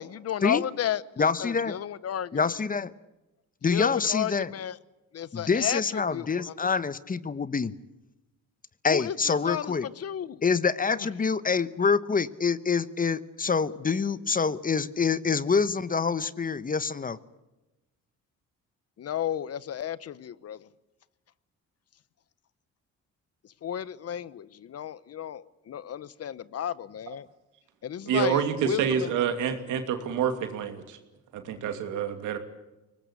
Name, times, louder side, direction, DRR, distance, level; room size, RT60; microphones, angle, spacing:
voice 1, 0.0-2.4 3.6-4.8 5.1-6.5 8.9-10.4 10.9-11.1 19.0-20.7 23.6-27.3 27.8-29.1, left 10 dB, 55° left, 19 dB, 0.9 m, -33 dB
voice 2, 1.2-1.8 2.3-2.9 3.6-4.5 5.3-7.7 8.8-9.9 10.4-17.2, left 5 dB, 30° left, 16 dB, 1.0 m, -26 dB
voice 3, 28.1-31.0 31.3-32.4, right 8 dB, 90° right, 7 dB, 2.7 m, -27 dB
23.5 x 19.5 x 8.4 m, 1.0 s
cardioid pair, 90°, 30 cm